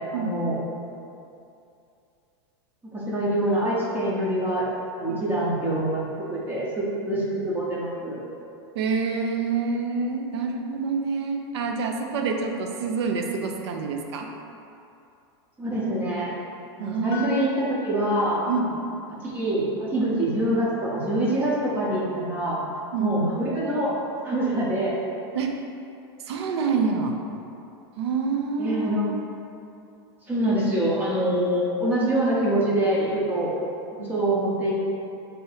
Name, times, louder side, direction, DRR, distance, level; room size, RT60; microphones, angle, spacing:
voice 1, 0.1-0.6 2.9-4.7 5.0-8.2 15.6-16.3 16.8-18.4 19.1-22.6 23.0-23.9 24.2-24.9 28.6-29.1 30.3-33.5 34.0-34.7, right 1 dB, 15° right, -6 dB, 0.6 m, -25 dB
voice 2, 8.8-14.3 16.8-17.4 18.5-18.8 22.9-23.1 25.3-25.5 26.3-27.2 28.0-29.2 34.0-34.1, right 5 dB, 80° right, 3 dB, 0.5 m, -27 dB
sound 1, 17.1-21.2, left 2 dB, 70° left, 0.6 m, -44 dB
3.8 x 2.7 x 4.0 m, 2.6 s
supercardioid pair, 145°, 14 cm